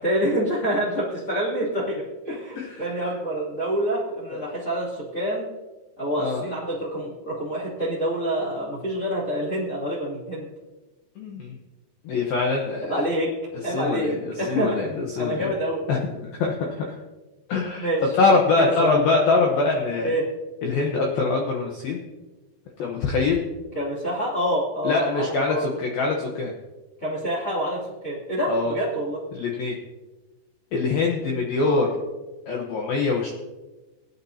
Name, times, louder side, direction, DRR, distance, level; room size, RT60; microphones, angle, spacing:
voice 1, 0.0-5.5 6.0-10.5 12.9-13.3 13.6-14.8 15.1-15.8 17.8-18.0 18.6-19.0 20.0-20.3 23.7-25.8 27.0-29.2 31.6-31.8, equal, 30° left, -6 dB, 1.7 m, -27 dB
voice 2, 2.6-2.9 4.3-4.4 6.2-6.5 11.2-11.6 12.0-13.0 13.7-15.5 15.9-17.0 17.5-20.1 20.6-22.0 22.8-23.4 24.8-26.5 28.5-28.7 29.3-29.8 30.7-31.9 32.5-33.3, left 3 dB, 80° left, 0 dB, 2.1 m, -24 dB
18.5 x 10.5 x 2.8 m, 1.2 s
omnidirectional pair, 5.9 m